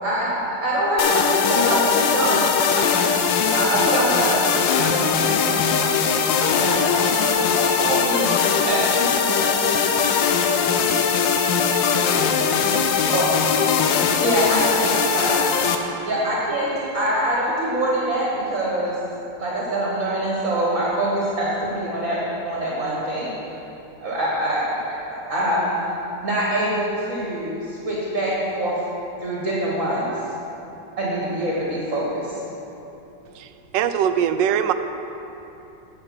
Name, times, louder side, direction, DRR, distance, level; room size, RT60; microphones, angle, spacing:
voice 1, 0.0-3.1 3.5-9.4 13.1-13.2 14.2-15.5 16.0-19.0 19.4-22.2 22.5-23.3 24.0-25.7 26.2-28.8 29.2-30.1 31.0-32.4, right 1 dB, 50° right, -6 dB, 1.8 m, -24 dB
sound 1, 1.0-15.8, left 6 dB, 90° left, 1.4 m, -20 dB
voice 2, 9.4-12.9, equal, 55° left, -8 dB, 1.7 m, -40 dB
voice 3, 33.3-34.7, right 9 dB, 80° right, 10 dB, 1.2 m, -22 dB
9.7 x 6.5 x 5.9 m, 3.0 s
omnidirectional pair, 2.0 m